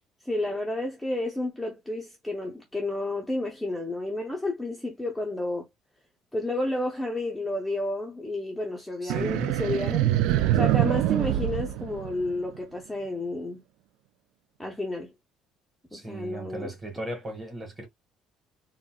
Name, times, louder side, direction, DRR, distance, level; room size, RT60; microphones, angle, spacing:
voice 1, 0.2-5.7 6.3-10.1 10.5-13.6 14.6-15.1 15.9-17.0, left 1 dB, 5° left, 0.6 m, -31 dB
voice 2, 9.0-9.5 15.9-17.9, right 1 dB, 20° right, 1.4 m, -36 dB
sound 1, 9.1-12.6, right 13 dB, 85° right, 0.3 m, -25 dB
3.9 x 2.1 x 2.2 m
cardioid pair, 155°, 0 cm